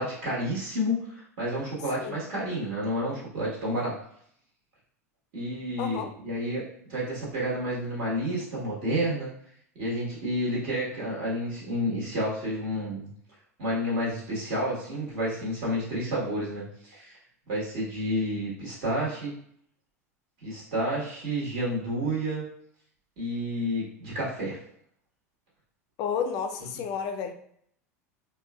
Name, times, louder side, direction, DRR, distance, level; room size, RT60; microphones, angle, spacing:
voice 1, 0.0-4.0 5.3-9.3 9.8-13.1 13.6-17.1 17.5-19.3 20.4-22.4 23.2-24.6, equal, 50° right, -5 dB, 1.3 m, -30 dB
voice 2, 5.8-6.1 26.0-27.3, left 7 dB, 45° left, 6 dB, 0.4 m, -31 dB
3.6 x 2.2 x 2.3 m, 0.67 s
figure-of-eight pair, 80°, 8 cm